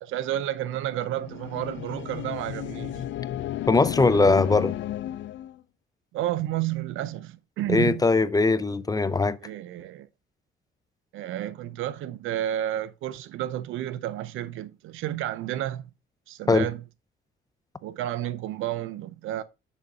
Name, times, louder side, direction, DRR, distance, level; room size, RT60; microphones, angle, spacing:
voice 1, 0.0-3.1 6.1-8.1 9.4-10.1 11.1-15.9 16.3-16.8 17.8-19.4, right 13 dB, 85° right, 0.6 m, -31 dB
sound 1, 0.9-5.6, left 13 dB, 70° left, 0.5 m, -33 dB
voice 2, 3.7-4.7 7.7-9.4 16.5-16.7, left 3 dB, 20° left, 0.5 m, -20 dB
7.6 x 6.7 x 2.8 m
cardioid pair, 90°, 20 cm